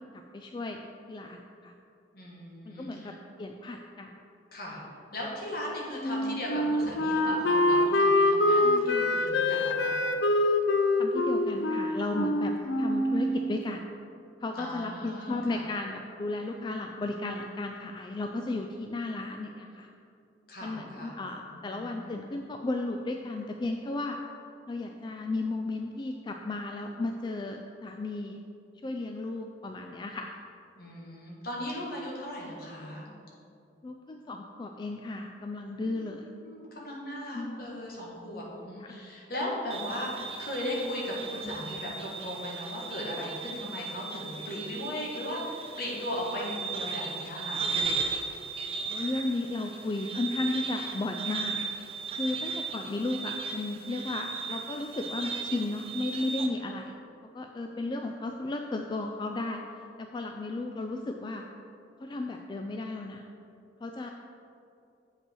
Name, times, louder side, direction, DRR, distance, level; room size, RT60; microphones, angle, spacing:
voice 1, 0.3-0.8 1.1-1.7 2.7-3.1 3.4-4.1 8.6-9.1 11.0-12.5 12.8-13.8 14.4-19.9 20.6-24.2 24.7-28.4 28.8-30.4 33.8-36.3 37.3-37.7 38.9-39.0 48.8-51.6 52.2-56.9 57.3-59.6 60.0-61.4 62.0-63.2 63.8-64.1, left 2 dB, 25° left, 3 dB, 0.3 m, -34 dB
voice 2, 2.1-3.2 4.5-4.8 5.1-10.0 14.5-15.6 20.5-21.1 21.5-22.1 30.7-33.1 35.8-47.6, left 1 dB, 60° left, -3 dB, 1.7 m, -37 dB
Wind instrument woodwind instrument, 6.0-13.5, left 1 dB, 90° left, 0.6 m, -25 dB
sound 1, 39.7-56.5, right 4 dB, 35° right, 0.6 m, -36 dB
7.6 x 5.3 x 4.5 m, 2.6 s
head